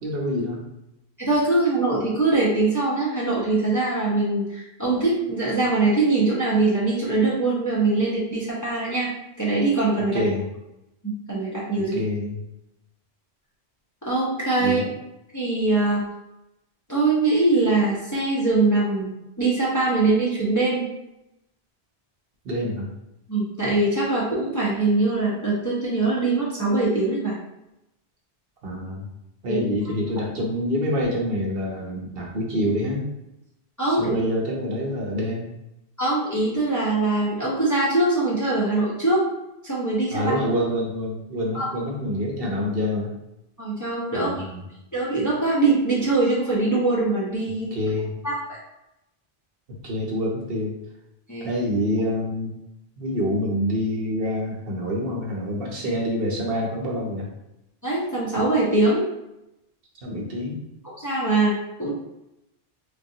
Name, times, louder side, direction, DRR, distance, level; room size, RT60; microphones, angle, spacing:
voice 1, 0.0-0.6 10.1-10.4 11.9-12.4 14.6-14.9 22.4-22.9 28.6-29.0 29.4-33.1 33.9-35.5 40.1-43.1 44.1-44.6 47.7-48.2 49.8-50.7 51.4-52.5 53.0-57.3 60.0-60.6, equal, 65° right, -2 dB, 0.9 m, -26 dB
voice 2, 1.2-9.1 9.4-10.2 11.3-12.0 14.0-14.8 15.3-16.0 16.9-20.9 23.3-27.4 29.5-29.6 33.8-34.2 36.0-39.2 39.6-40.3 41.5-41.7 43.6-44.4 44.9-47.7 48.2-48.4 51.3-51.5 57.8-59.0 60.8-61.5 61.8-61.9, right 2 dB, 20° left, -6 dB, 0.6 m, -22 dB
3.5 x 2.3 x 2.7 m, 0.89 s
omnidirectional pair, 1.1 m